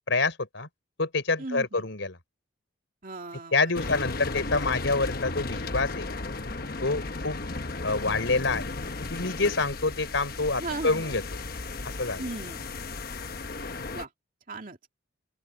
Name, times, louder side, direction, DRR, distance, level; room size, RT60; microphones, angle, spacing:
voice 1, 0.1-0.7 1.0-2.1 3.5-6.1 6.8-7.4 7.8-11.2 11.8-12.2, left 3 dB, 75° left, 3.7 m, -27 dB
voice 2, 1.4-1.9 3.0-3.7 10.6-11.2 12.2-12.6 13.9-14.1 14.5-14.8, right 2 dB, 45° right, 2.6 m, -37 dB
sound 1, 3.7-14.0, left 3 dB, 50° left, 1.1 m, -35 dB
open air
head